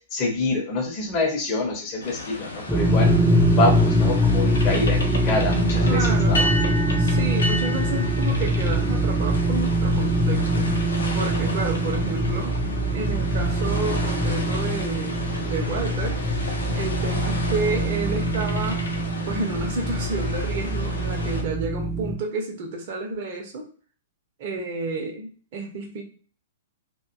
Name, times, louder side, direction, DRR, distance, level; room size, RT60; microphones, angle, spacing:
voice 1, 0.1-3.1 3.5-6.5, left 2 dB, 30° left, 0 dB, 0.7 m, -26 dB
sound 1, 2.0-21.4, left 2 dB, 65° left, 0.6 m, -33 dB
sound 2, 2.7-22.2, right 1 dB, ahead, 0.3 m, -23 dB
voice 2, 5.9-6.4 7.0-10.7 11.1-12.6 12.9-16.2 16.7-18.9 19.3-23.7 24.4-26.0, right 3 dB, 40° right, 1 dB, 0.6 m, -30 dB
2.5 x 2.1 x 2.4 m, 0.42 s
figure-of-eight pair, 110°, 0 cm